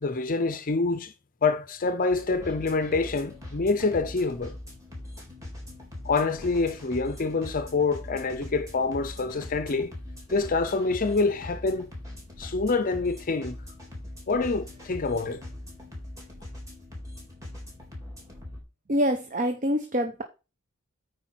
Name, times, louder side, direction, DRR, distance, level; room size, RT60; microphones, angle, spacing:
voice 1, 0.0-1.1 1.4-4.5 6.0-9.9 10.3-11.9 12.4-13.6 14.3-15.4, left 3 dB, 40° left, 0.6 m, -26 dB
sound 1, 2.1-18.6, left 1 dB, 15° right, 4.0 m, -42 dB
voice 2, 18.9-20.2, equal, 35° right, 0.9 m, -25 dB
9.0 x 4.8 x 5.8 m
head